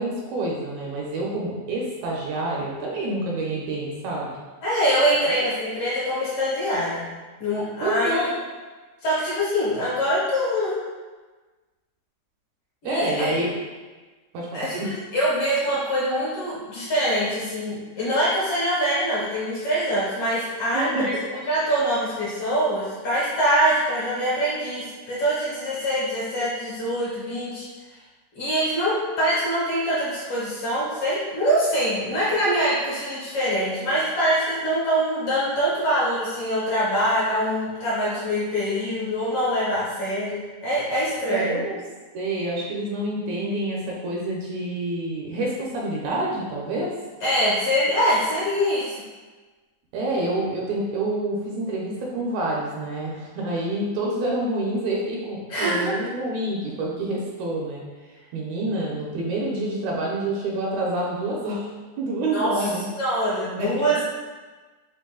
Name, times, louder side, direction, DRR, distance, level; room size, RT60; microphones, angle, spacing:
voice 1, 0.0-4.3 5.2-5.4 7.8-8.3 12.8-13.5 14.3-14.9 20.7-21.1 41.2-41.8 42.1-47.0 49.9-57.8 58.3-62.9 63.6-63.8, right 1 dB, 75° right, -3 dB, 1.8 m, -27 dB
voice 2, 4.6-7.0 7.4-8.2 9.0-10.8 12.8-13.3 14.5-14.8 15.1-21.1 21.5-27.6 28.4-41.6 47.2-49.0 55.5-55.9 62.3-62.5 63.0-64.0, equal, 60° left, -9 dB, 1.8 m, -24 dB
4.6 x 2.5 x 3.6 m, 1.3 s
omnidirectional pair, 3.4 m